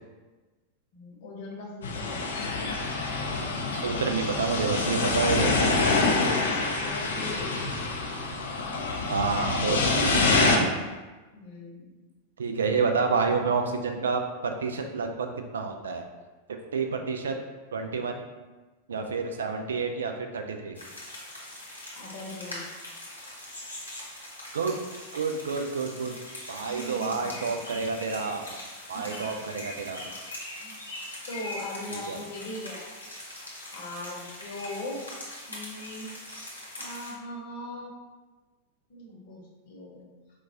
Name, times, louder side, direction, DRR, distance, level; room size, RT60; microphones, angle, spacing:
voice 1, 0.9-2.3 6.4-7.5 11.3-11.9 22.0-22.7 26.7-27.5 28.9-29.3 30.6-30.8 31.3-32.8 33.7-35.0 35.5-36.1 36.7-37.9 38.9-40.1, left 1 dB, 50° left, -2 dB, 0.9 m, -40 dB
sound 1, 1.8-10.6, left 3 dB, 65° left, 0.4 m, -26 dB
voice 2, 3.7-6.0 9.1-10.2 10.5-10.7 12.4-15.3 15.5-16.0 16.7-17.4 17.7-18.2 18.9-20.8 24.5-24.8 25.1-26.2 26.5-28.5 28.9-30.1 31.9-32.2, right 4 dB, 65° right, 4 dB, 0.4 m, -29 dB
sound 2, 20.7-37.1, left 1 dB, 80° left, 1.0 m, -42 dB
4.4 x 2.3 x 2.8 m, 1.3 s
figure-of-eight pair, 90°, 0 cm